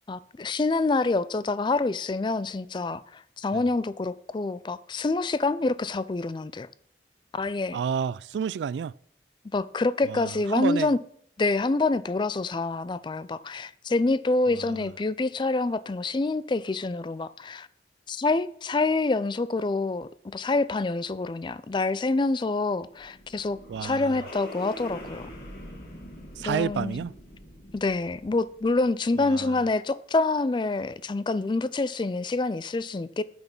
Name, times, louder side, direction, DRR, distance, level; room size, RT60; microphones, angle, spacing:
voice 1, 0.1-6.7 7.3-7.8 9.5-11.0 11.4-17.7 18.1-25.3 26.4-27.0 27.7-33.2, left 3 dB, 25° left, 0.3 m, -27 dB
voice 2, 7.7-8.9 10.0-10.9 14.5-14.9 23.7-24.2 26.4-27.1 29.2-29.6, right 7 dB, 80° right, 0.3 m, -31 dB
sound 1, 22.8-29.0, left 1 dB, 60° left, 2.2 m, -44 dB
8.9 x 6.2 x 5.4 m
head